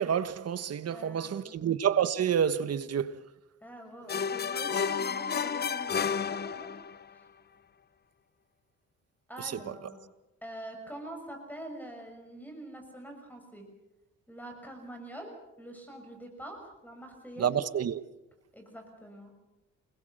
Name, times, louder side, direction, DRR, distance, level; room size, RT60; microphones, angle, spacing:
voice 1, 0.0-3.2 17.4-18.0, right 8 dB, 55° right, 1.4 m, -28 dB
voice 2, 0.9-1.6 3.6-6.8 9.3-10.0 10.4-13.7 14.3-17.6 18.5-19.3, right 1 dB, 5° left, 6.5 m, -45 dB
sound 1, 4.1-7.0, left 6 dB, 35° left, 0.8 m, -31 dB
28.5 x 21.5 x 6.6 m
cardioid pair, 90°, 30 cm